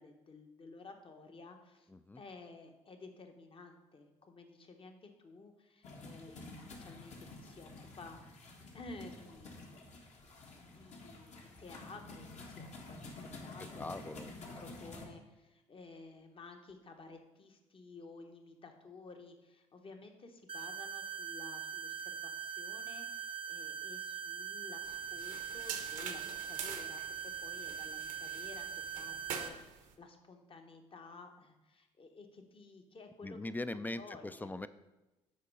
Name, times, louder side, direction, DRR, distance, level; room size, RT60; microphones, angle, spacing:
voice 1, 0.0-1.9 2.2-8.4 8.7-9.7 10.6-13.1 13.4-13.9 14.6-28.7 28.9-33.4 33.7-34.5, left 3 dB, 40° left, 5 dB, 1.1 m, -53 dB
voice 2, 1.9-2.2 13.6-14.3 33.2-34.7, left 2 dB, 15° left, 14 dB, 0.4 m, -41 dB
sound 1, 5.8-15.1, left 3 dB, 55° left, 1.5 m, -50 dB
sound 2, 20.5-29.5, right 8 dB, 40° right, 0.5 m, -42 dB
sound 3, 24.9-29.9, right 7 dB, 70° right, 0.8 m, -46 dB
6.6 x 4.5 x 5.4 m, 1.0 s
supercardioid pair, 60°, 14 cm